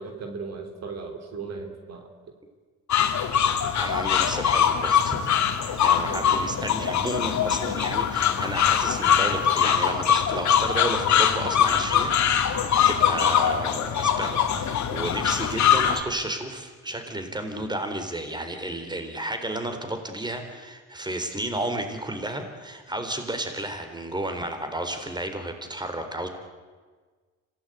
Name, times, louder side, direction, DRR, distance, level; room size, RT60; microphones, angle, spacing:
voice 1, 0.0-2.1 6.1-6.3, right 4 dB, 60° right, 5 dB, 3.5 m, -37 dB
sound 1, 2.9-16.0, left 8 dB, 65° left, 2.3 m, -22 dB
voice 2, 3.8-5.2 5.8-26.3, right 1 dB, 15° right, 6 dB, 4.1 m, -32 dB
25.5 x 17.5 x 9.2 m, 1.4 s
cardioid pair, 90°, 30 cm